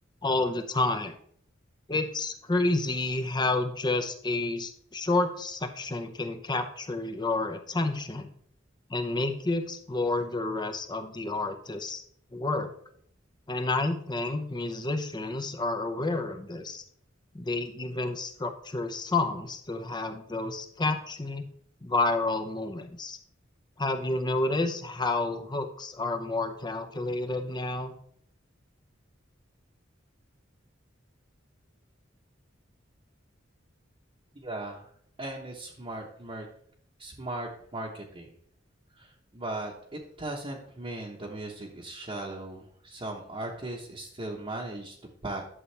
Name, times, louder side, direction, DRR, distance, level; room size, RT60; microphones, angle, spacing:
voice 1, 0.2-1.1 1.9-8.3 8.9-12.0 12.3-12.7 13.5-16.8 17.3-21.5 21.8-23.2 23.8-27.9, left 2 dB, 20° left, 7 dB, 0.7 m, -30 dB
voice 2, 34.4-34.9 35.2-36.5 37.0-38.4 39.0-44.9 45.2-45.4, right 2 dB, 30° right, -4 dB, 1.1 m, -38 dB
11.0 x 6.8 x 3.4 m, 0.65 s
head